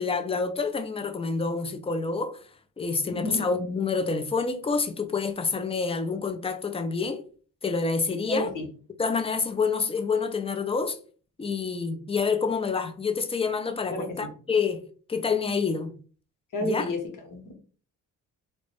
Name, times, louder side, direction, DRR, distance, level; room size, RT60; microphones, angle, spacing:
voice 1, 0.0-2.4 2.8-7.2 7.6-8.5 9.0-11.0 11.4-14.8 15.1-16.0 16.6-16.8, left 4 dB, 15° left, 0.3 m, -27 dB
voice 2, 3.1-3.5 8.3-8.7 13.9-14.3 16.5-17.0 17.3-17.5, left 1 dB, 55° left, 0.8 m, -31 dB
2.1 x 2.0 x 2.9 m
supercardioid pair, 55°, 38 cm